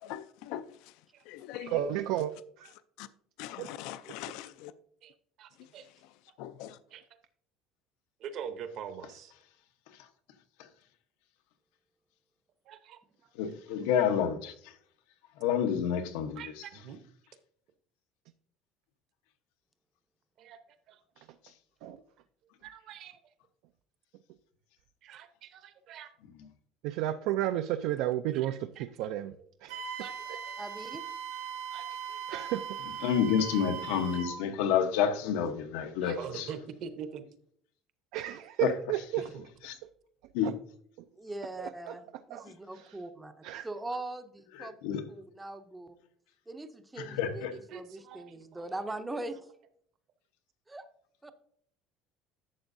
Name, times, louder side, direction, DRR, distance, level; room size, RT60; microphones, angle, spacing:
voice 1, 0.0-0.9 1.3-1.9 3.0-3.1 3.4-4.7 5.6-5.7 6.4-6.8, left 12 dB, 65° left, 0.4 m, -42 dB
voice 2, 1.7-2.3 2.6-2.7 3.6-3.7 21.8-22.0 26.8-29.4 29.6-29.8 32.3-32.8 38.1-39.3 40.4-40.5 41.6-41.9 42.3-42.4 42.7-43.0 43.4-43.7, right 13 dB, 65° right, 0.4 m, -32 dB
voice 3, 5.0-5.9 6.9-7.0 8.2-9.3 12.7-13.0 16.4-17.0 20.4-20.6 20.9-21.0 22.6-23.2 25.0-26.1 28.3-29.1 30.0-30.6 31.7-32.4 36.0-37.2 39.3-39.4 42.3-42.5 47.7-49.0, right 7 dB, 45° right, 0.8 m, -44 dB
voice 4, 13.4-14.5 15.4-16.4 33.0-36.5 38.6-38.7 39.7-39.8 40.3-40.5 44.6-45.0 47.0-47.5, left 8 dB, 90° left, 1.0 m, -29 dB
Wind instrument woodwind instrument, 29.7-34.4, right 7 dB, 80° right, 1.4 m, -39 dB
voice 5, 30.6-31.0 41.2-43.3 43.6-46.0 46.5-49.5 50.7-50.9 51.2-51.3, right 2 dB, 5° right, 0.5 m, -41 dB
11.5 x 7.3 x 2.6 m
cardioid pair, 175°, 0 cm